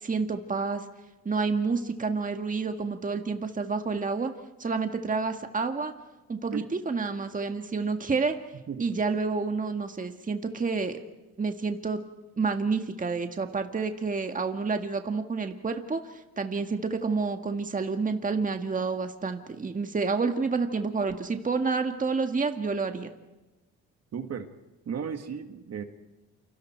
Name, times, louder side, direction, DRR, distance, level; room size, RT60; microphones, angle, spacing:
voice 1, 0.0-0.8 1.3-4.3 4.6-5.9 6.3-8.4 8.8-11.0 11.4-12.0 12.4-23.1, right 4 dB, 25° right, 6 dB, 1.7 m, -29 dB
voice 2, 24.1-24.5 24.9-25.8, right 7 dB, 55° right, 7 dB, 2.1 m, -34 dB
29.0 x 25.5 x 4.6 m, 1.1 s
cardioid pair, 90°, 30 cm